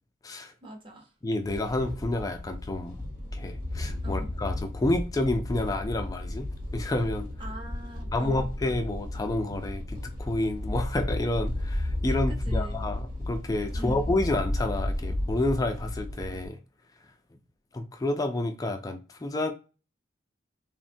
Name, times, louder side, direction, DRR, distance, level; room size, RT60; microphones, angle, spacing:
voice 1, 0.6-1.1 4.0-4.3 7.4-8.5 12.3-12.8 13.7-14.1, right 1 dB, 25° right, 0.7 m, -42 dB
voice 2, 1.2-3.0 3.3-6.5 6.7-7.3 8.1-16.6 17.7-19.5, left 2 dB, 20° left, 0.3 m, -29 dB
sound 1, 1.4-16.5, left 1 dB, 45° right, 1.0 m, -33 dB
3.4 x 2.1 x 2.5 m
head